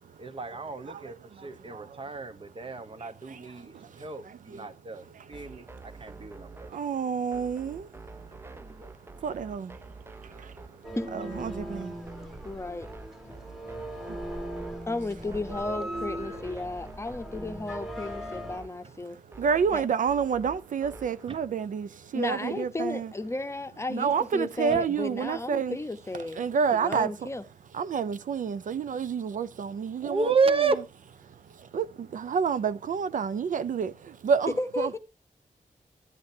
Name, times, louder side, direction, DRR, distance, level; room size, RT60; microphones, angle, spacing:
voice 1, 0.2-1.1 1.4-6.7 8.4-8.9 12.2-12.3 15.5-15.9 16.1-16.4 21.3-21.4 24.7-24.8 30.0-30.8, right 4 dB, 45° right, 0.9 m, -31 dB
voice 2, 0.9-2.0 3.0-4.7 5.1-5.6 6.7-7.9 9.2-9.8 10.2-10.6 11.1-12.0 12.3-12.4 13.3-13.4 14.1-14.2 19.4-23.1 23.9-25.8 26.4-27.1 27.7-30.3 31.5-34.9, right 6 dB, 75° right, 0.5 m, -30 dB
sound 1, 5.3-21.3, right 3 dB, 15° right, 0.5 m, -48 dB
sound 2, 10.8-18.6, equal, ahead, 1.8 m, -39 dB
voice 3, 12.4-12.9 13.2-13.3 14.9-19.2 19.7-19.9 22.1-27.4 34.6-35.0, left 2 dB, 20° left, 0.8 m, -34 dB
10.5 x 8.5 x 2.7 m
wide cardioid pair, 150°, 14 cm